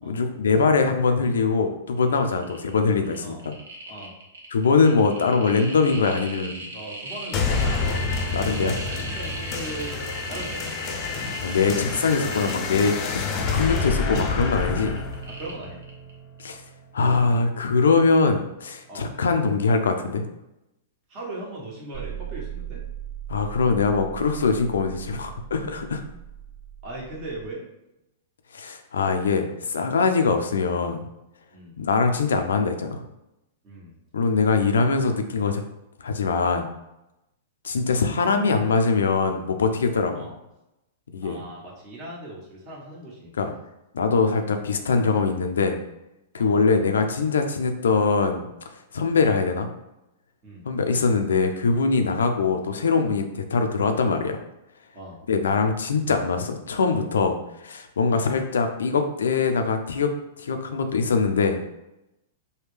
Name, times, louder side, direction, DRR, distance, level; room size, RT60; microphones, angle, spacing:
voice 1, 0.0-3.5 4.5-6.6 8.3-8.8 11.4-13.3 13.5-14.9 16.4-16.6 16.9-20.2 23.3-26.0 28.5-31.0 31.8-33.0 34.1-35.6 36.0-36.7 37.6-40.2 41.1-41.4 43.4-43.5 43.9-45.8 46.3-48.5 48.9-49.7 50.7-54.4 55.3-60.1 60.4-61.6, left 4 dB, 85° left, 6 dB, 0.5 m, -22 dB
sound 1, 2.0-2.1 2.3-2.7 3.0-16.1 16.4-16.5, right 2 dB, 80° right, 0.9 m, -38 dB
voice 2, 6.7-8.0 8.4-11.1 15.3-15.8 18.9-19.1 21.1-22.8 26.8-27.6 31.5-31.7 33.6-33.9 40.1-40.3 41.2-43.6 46.4-46.6 50.4-50.6 54.9-55.2 58.1-58.3, right 2 dB, 35° right, -4 dB, 1.3 m, -39 dB
sound 2, 7.3-16.3, left 4 dB, 35° left, 0.5 m, -28 dB
sound 3, 21.9-27.5, right 10 dB, 65° right, 1.4 m, -38 dB
3.4 x 2.3 x 3.3 m, 0.91 s
hypercardioid pair, 130°, 0 cm